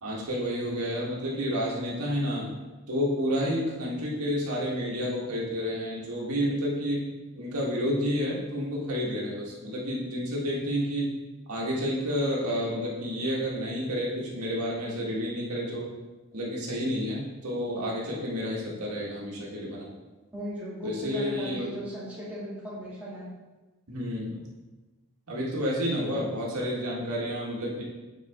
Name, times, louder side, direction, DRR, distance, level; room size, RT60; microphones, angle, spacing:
voice 1, 0.0-2.5 2.9-7.0 7.3-11.1 11.5-15.9 16.3-19.9 20.8-21.7 23.9-24.4 25.3-27.8, equal, 90° right, -4 dB, 1.8 m, -30 dB
voice 2, 20.3-23.3, equal, 5° right, -9 dB, 2.1 m, -37 dB
8.2 x 5.5 x 3.7 m, 1.2 s
head